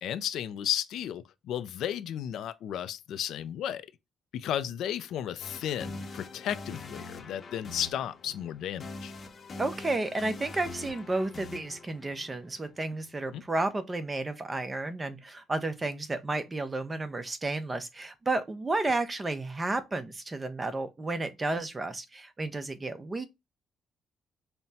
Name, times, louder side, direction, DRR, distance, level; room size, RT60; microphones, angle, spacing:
voice 1, 0.0-3.9 4.3-9.1 13.3-13.4, left 10 dB, 80° left, 0.3 m, -34 dB
sound 1, 5.4-13.3, left 3 dB, 40° left, 0.7 m, -44 dB
voice 2, 9.6-23.3, right 2 dB, 25° right, 0.6 m, -32 dB
5.4 x 2.1 x 2.7 m
cardioid pair, 90°, 0 cm